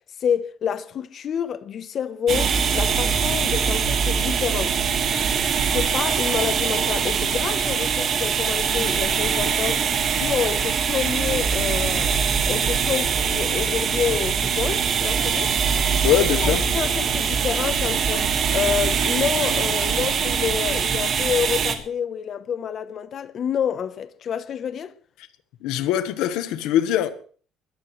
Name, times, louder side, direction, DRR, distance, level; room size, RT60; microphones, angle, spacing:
voice 1, 0.2-4.8 5.7-9.8 10.1-12.2 12.5-15.5 16.4-24.9, left 8 dB, 35° left, 0.9 m, -28 dB
sound 1, 2.3-21.8, right 6 dB, 35° right, 1.8 m, -23 dB
voice 2, 16.0-16.7 25.6-27.1, left 11 dB, 70° left, 1.3 m, -22 dB
21.5 x 14.5 x 3.2 m
cardioid pair, 155°, 0 cm